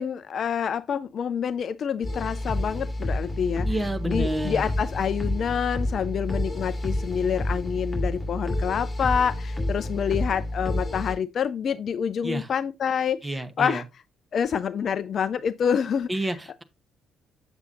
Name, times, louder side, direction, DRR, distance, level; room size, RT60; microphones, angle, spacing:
voice 1, 0.0-3.8 4.0-13.8 14.3-16.1, left 7 dB, 45° left, 0.3 m, -27 dB
sound 1, 2.0-11.1, left 1 dB, 15° left, 2.3 m, -29 dB
voice 2, 3.6-4.8 12.2-12.5 13.2-13.8 16.1-16.6, right 1 dB, 15° right, 1.0 m, -29 dB
7.9 x 7.1 x 2.6 m
figure-of-eight pair, 45°, 0 cm